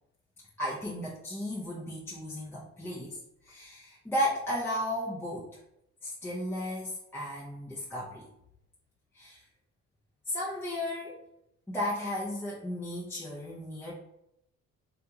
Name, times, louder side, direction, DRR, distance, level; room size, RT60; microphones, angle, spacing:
voice 1, 0.6-3.2 3.4-5.6 6.0-8.2 9.1-9.4 10.3-11.2 11.7-13.9, left 1 dB, 5° left, -6 dB, 0.7 m, -34 dB
3.4 x 2.5 x 2.8 m, 0.80 s
cardioid pair, 90°, 30 cm